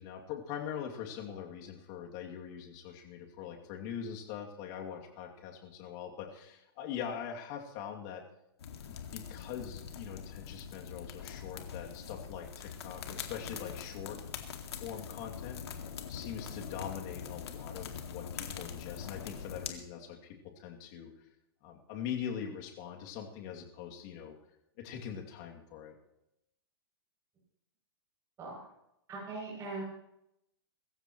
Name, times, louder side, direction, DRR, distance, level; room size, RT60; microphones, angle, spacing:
voice 1, 0.0-8.2 8.9-14.2 14.7-15.8 16.1-21.1 21.6-24.4 24.8-26.0, left 8 dB, 45° left, 1 dB, 2.6 m, -42 dB
sound 1, 8.6-19.7, left 7 dB, 80° left, 2.2 m, -43 dB
voice 2, 29.1-29.8, right 3 dB, 25° right, -5 dB, 7.4 m, -40 dB
23.0 x 14.5 x 3.1 m, 0.82 s
hypercardioid pair, 135°, 14 cm